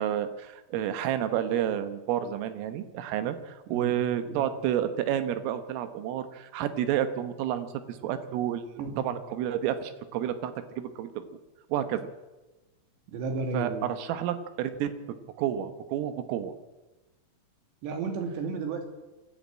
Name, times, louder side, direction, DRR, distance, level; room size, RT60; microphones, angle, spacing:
voice 1, 0.0-11.1 11.7-12.1 13.5-14.9 15.4-16.5, right 10 dB, 90° right, 10 dB, 3.9 m, -30 dB
voice 2, 3.7-4.0 4.2-4.5 8.8-9.0 13.1-13.9 17.8-18.9, right 3 dB, 65° right, 4 dB, 4.6 m, -33 dB
26.0 x 12.0 x 8.7 m, 1.1 s
omnidirectional pair, 5.7 m